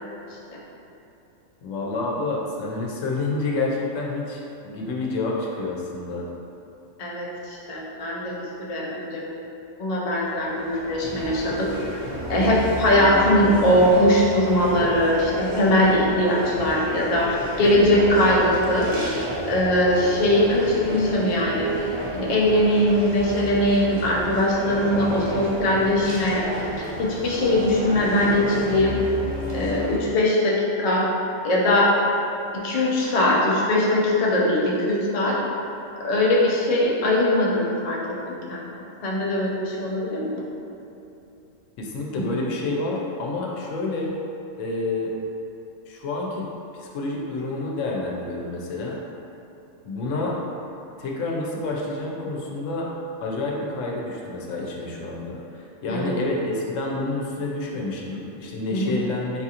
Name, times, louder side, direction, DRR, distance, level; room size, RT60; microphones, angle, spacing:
voice 1, 1.6-6.3 41.8-44.2 44.6-45.2 45.9-46.5 46.8-49.0 49.8-50.4 51.0-52.9 53.2-59.4, left 2 dB, 85° left, -2 dB, 0.9 m, -28 dB
voice 2, 7.0-9.2 9.8-11.7 12.3-17.3 17.6-18.9 19.4-21.7 22.1-26.4 27.0-29.0 29.5-31.1 31.4-31.9 32.5-35.4 36.0-38.0 38.3-40.3 55.9-56.1 58.7-59.0, left 1 dB, 55° left, -4 dB, 0.4 m, -21 dB
sound 1, 10.2-30.0, right 1 dB, 35° right, 0.5 m, -31 dB
4.1 x 2.4 x 2.7 m, 2.8 s
omnidirectional pair, 1.3 m